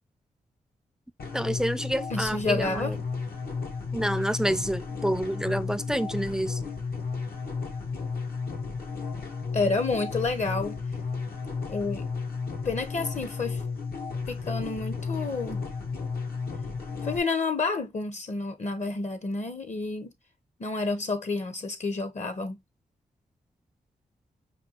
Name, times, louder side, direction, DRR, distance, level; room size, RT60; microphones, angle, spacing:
sound 1, 1.2-17.2, left 4 dB, 80° left, 1.0 m, -33 dB
voice 1, 1.3-3.0 3.9-6.6, right 1 dB, 5° right, 0.3 m, -28 dB
voice 2, 2.1-3.0 9.5-10.8 11.7-12.1 12.6-13.6 14.3-15.6 17.0-20.1 20.6-22.6, left 3 dB, 50° left, 0.7 m, -29 dB
5.2 x 2.3 x 2.8 m
cardioid pair, 50°, 16 cm